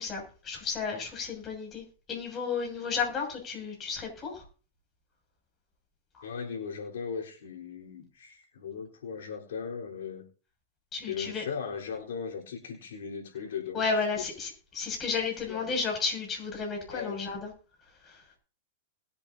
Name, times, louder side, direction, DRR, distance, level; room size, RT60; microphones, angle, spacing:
voice 1, 0.0-4.4 10.9-11.4 13.7-17.5 18.0-18.2, left 5 dB, 20° left, 0 dB, 6.7 m, -33 dB
voice 2, 6.2-10.3 11.1-14.0 15.4-15.8 16.9-17.2, left 6 dB, 80° left, -2 dB, 3.9 m, -38 dB
21.0 x 8.6 x 2.8 m, 0.38 s
hypercardioid pair, 140°, 0 cm